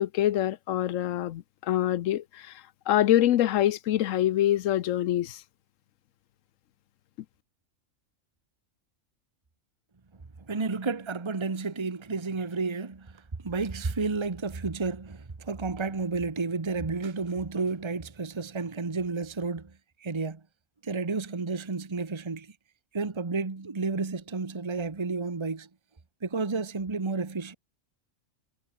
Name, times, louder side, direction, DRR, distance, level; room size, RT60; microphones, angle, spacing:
voice 1, 0.0-5.4, left 12 dB, 85° left, 1.0 m, -25 dB
voice 2, 10.5-19.7 20.0-20.4 20.8-22.5 22.9-25.7 26.2-27.5, right 4 dB, 25° right, 1.2 m, -31 dB
omnidirectional pair, 1.3 m